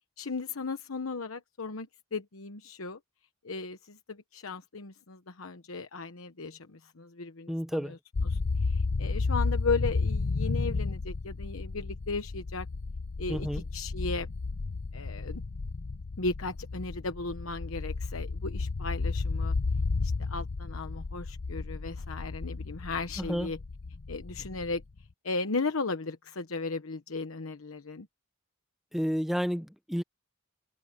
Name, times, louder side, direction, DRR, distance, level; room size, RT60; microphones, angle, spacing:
voice 1, 0.2-3.0 3.4-12.7 13.2-14.3 14.9-15.4 16.2-19.5 20.0-23.6 24.1-24.8 25.2-28.1, left 3 dB, 80° left, 1.0 m, -36 dB
voice 2, 7.5-7.9 13.3-13.6 23.2-23.5 28.9-30.0, equal, ahead, 0.9 m, -31 dB
sound 1, 8.1-25.0, left 3 dB, 65° left, 0.7 m, -32 dB
head